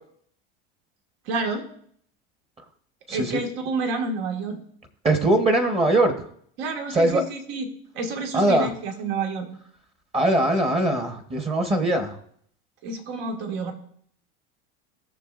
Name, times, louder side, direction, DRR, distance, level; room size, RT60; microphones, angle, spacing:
voice 1, 1.3-1.6 3.1-4.6 6.6-7.7 7.9-9.5 12.8-13.7, right 3 dB, 70° right, 4 dB, 1.9 m, -29 dB
voice 2, 3.1-3.4 5.0-6.2 6.9-7.2 8.3-8.7 10.1-12.2, right 1 dB, 20° right, 6 dB, 1.1 m, -21 dB
19.5 x 6.8 x 2.5 m, 0.65 s
supercardioid pair, 125°, 30 cm